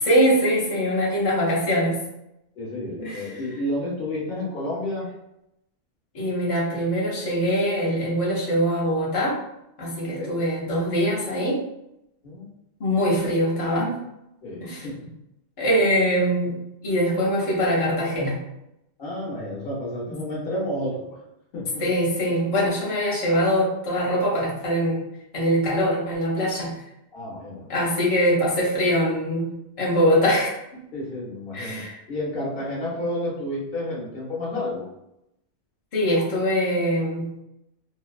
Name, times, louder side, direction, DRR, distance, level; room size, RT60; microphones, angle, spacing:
voice 1, 0.0-2.0 3.0-3.4 6.1-9.4 9.8-11.7 12.8-14.0 14.6-14.8 15.6-18.4 21.8-25.1 25.3-26.9 27.7-30.6 31.5-32.0 35.9-37.4, equal, 40° left, -6 dB, 0.6 m, -23 dB
voice 2, 2.6-5.1 10.0-10.3 12.2-12.4 14.4-15.0 19.0-21.2 21.5-21.8 27.1-27.7 30.9-34.9, left 1 dB, 55° left, -5 dB, 1.0 m, -30 dB
2.6 x 2.1 x 2.4 m, 0.86 s
omnidirectional pair, 1.2 m